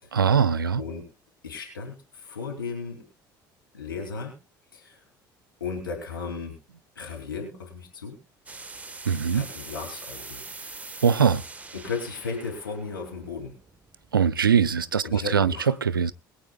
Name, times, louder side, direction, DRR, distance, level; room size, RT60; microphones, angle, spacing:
voice 1, 0.1-0.8 9.1-9.5 11.0-11.4 14.1-15.5 15.8-16.1, right 7 dB, 85° right, 0.5 m, -22 dB
voice 2, 0.8-1.1 1.4-3.0 3.7-4.4 4.7-5.0 5.6-6.5 6.9-8.2 9.3-10.4 10.8-10.9 11.7-13.5 15.0-15.7, left 4 dB, 80° left, 3.0 m, -35 dB
sound 1, 8.5-14.1, right 3 dB, 15° right, 1.4 m, -43 dB
23.0 x 8.5 x 2.4 m
figure-of-eight pair, 60°, 11 cm